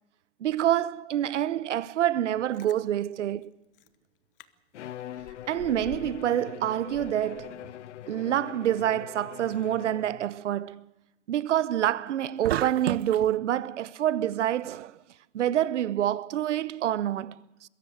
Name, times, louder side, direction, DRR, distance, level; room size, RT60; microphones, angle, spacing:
voice 1, 0.4-3.5 5.5-7.7 8.1-10.8 11.3-15.0 15.3-17.7, right 11 dB, 80° right, 1.0 m, -27 dB
Chewing mastication, 2.3-2.8 3.4-3.5 3.7-4.0 4.4-4.5 4.8-6.3 6.6-7.9 8.3-8.4, left 12 dB, 50° left, 1.1 m, -48 dB
Bowed string instrument, 4.7-10.4, left 11 dB, 75° left, 0.9 m, -43 dB
sound 1, 12.4-13.3, right 13 dB, 60° right, 0.6 m, -30 dB
21.5 x 16.5 x 7.9 m
hypercardioid pair, 165°, 35 cm